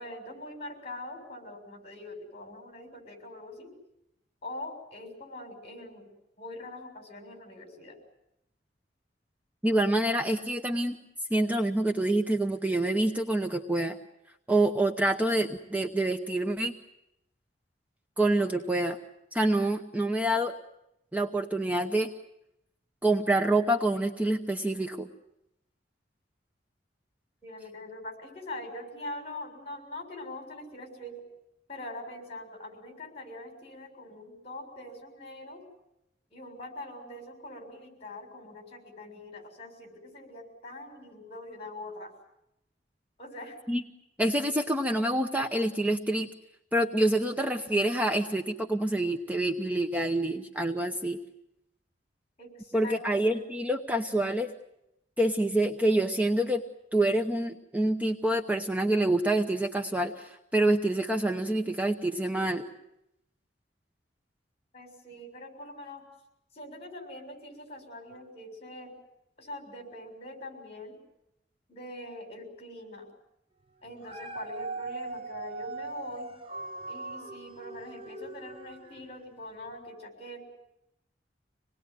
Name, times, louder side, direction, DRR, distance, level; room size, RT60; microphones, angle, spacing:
voice 1, 0.0-3.7 4.4-6.1 6.4-8.0 27.4-31.2 31.7-35.6 36.3-42.1 43.2-43.6 52.4-52.9 64.7-66.0 66.5-68.9 69.4-71.0 71.7-73.1 73.8-76.4 76.9-80.4, left 1 dB, 35° left, 4 dB, 6.8 m, -43 dB
voice 2, 9.6-11.0 11.3-14.0 14.5-16.7 18.2-19.0 19.3-20.5 21.1-22.1 23.0-25.1 43.7-43.8 44.2-46.3 46.7-51.2 52.7-54.5 55.2-56.6 56.9-62.6, right 1 dB, 10° right, 4 dB, 0.9 m, -27 dB
Dog, 73.8-79.2 79.7-79.8, right 3 dB, 30° right, 1.6 m, -40 dB
26.0 x 20.0 x 9.5 m, 0.83 s
head